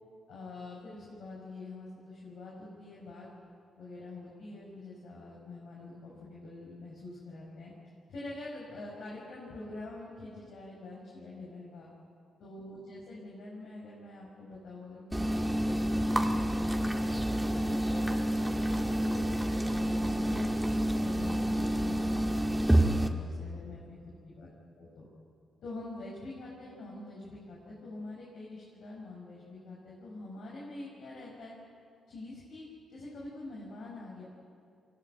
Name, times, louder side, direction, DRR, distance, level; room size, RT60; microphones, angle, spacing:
voice 1, 0.3-3.3 3.8-7.7 8.1-11.9 12.4-17.2 17.5-24.0 24.4-24.5 24.8-25.0 25.6-31.6 32.1-34.2, left 2 dB, 70° left, -5 dB, 5.2 m, -45 dB
sound 1, 15.1-23.1, right 1 dB, 5° right, 2.1 m, -28 dB
24.0 x 16.5 x 9.0 m, 2.4 s
supercardioid pair, 45°, 0 cm